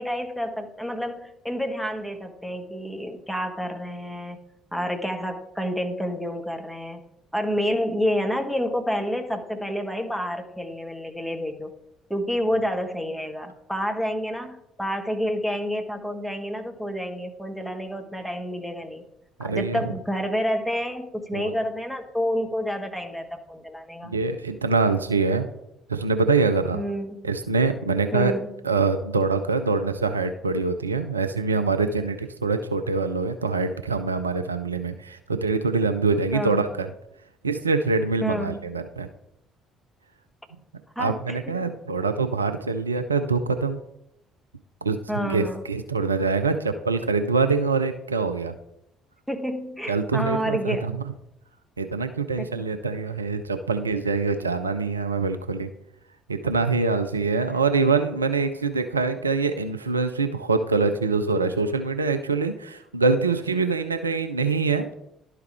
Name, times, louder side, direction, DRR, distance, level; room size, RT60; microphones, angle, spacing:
voice 1, 0.0-4.4 4.7-7.0 7.3-11.7 12.1-19.0 19.4-24.1 26.7-27.2 28.1-28.5 36.3-36.7 38.2-38.6 40.9-41.6 45.1-45.6 49.3-50.9 52.4-52.7 56.4-56.5 57.5-57.6, equal, ahead, 3 dB, 1.3 m, -29 dB
voice 2, 19.4-19.9 21.3-21.6 24.0-25.5 25.9-26.8 27.2-28.3 28.6-36.9 37.4-39.1 41.0-43.8 44.8-48.5 49.9-50.9 51.8-55.7 56.3-64.9, right 4 dB, 85° right, 9 dB, 0.4 m, -24 dB
11.5 x 4.7 x 3.4 m, 0.81 s
figure-of-eight pair, 50°, 0 cm